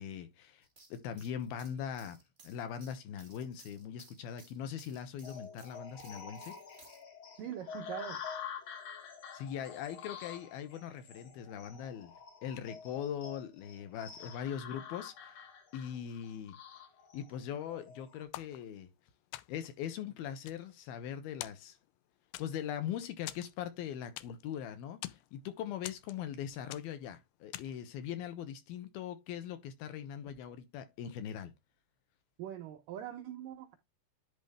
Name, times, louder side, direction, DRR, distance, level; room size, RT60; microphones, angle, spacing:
voice 1, 0.0-2.2 2.4-6.6 9.3-12.2 12.4-15.3 15.7-16.6 17.1-18.9 19.5-21.8 22.4-31.5, left 9 dB, 70° left, 2.6 m, -41 dB
sound 1, 0.6-7.0, right 3 dB, 25° right, 1.1 m, -60 dB
sound 2, 5.2-18.2, left 7 dB, 50° left, 2.2 m, -48 dB
voice 2, 7.4-8.2 32.4-33.7, right 10 dB, 85° right, 2.0 m, -42 dB
sound 3, 18.3-19.0 19.3-19.8 20.2-21.1 21.4-22.0 22.3-22.8 23.3-24.5 24.8-25.3 25.8-26.4 26.7-27.1 27.5-27.9, left 16 dB, 90° left, 2.1 m, -46 dB
10.5 x 4.2 x 3.4 m
omnidirectional pair, 5.1 m